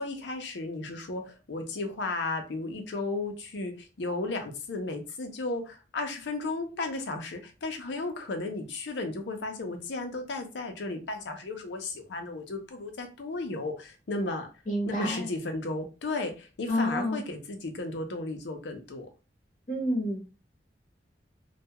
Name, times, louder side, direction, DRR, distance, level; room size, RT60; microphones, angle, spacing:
voice 1, 0.0-14.5 14.9-19.1, left 2 dB, 85° left, 5 dB, 0.6 m, -34 dB
voice 2, 14.7-15.3 16.7-17.2 19.7-20.2, equal, 45° left, -3 dB, 0.8 m, -28 dB
2.2 x 2.2 x 2.8 m, 0.32 s
head